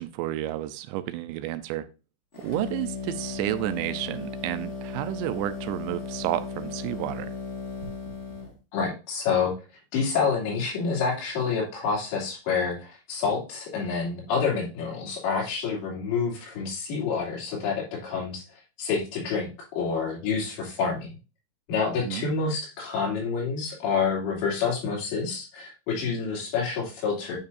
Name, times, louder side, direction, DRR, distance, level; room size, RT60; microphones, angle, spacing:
voice 1, 0.0-1.9 2.4-7.3 22.0-22.3, right 15 dB, 90° right, 12 dB, 2.9 m, -31 dB
sound 1, 2.3-8.6, left 5 dB, 35° left, 1.1 m, -36 dB
voice 2, 8.7-9.5 9.9-18.4 18.8-21.1 21.7-27.4, left 5 dB, 85° left, -4 dB, 4.9 m, -28 dB
9.6 x 5.4 x 2.6 m, 0.31 s
omnidirectional pair, 5.0 m